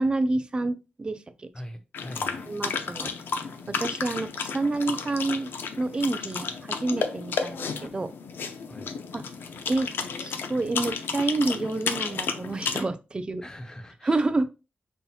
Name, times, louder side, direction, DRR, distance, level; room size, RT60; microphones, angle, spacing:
voice 1, 0.0-1.5 2.5-3.1 3.7-5.5 5.8-8.1 9.1-9.2 9.7-9.9 10.2-13.4 14.0-14.5, right 2 dB, 25° right, 0.3 m, -28 dB
voice 2, 1.5-2.5 8.7-8.9 13.4-14.3, equal, 20° left, 0.6 m, -42 dB
sound 1, 1.9-12.8, left 5 dB, 90° left, 0.5 m, -32 dB
5.5 x 2.7 x 2.3 m
wide cardioid pair, 120°, 4 cm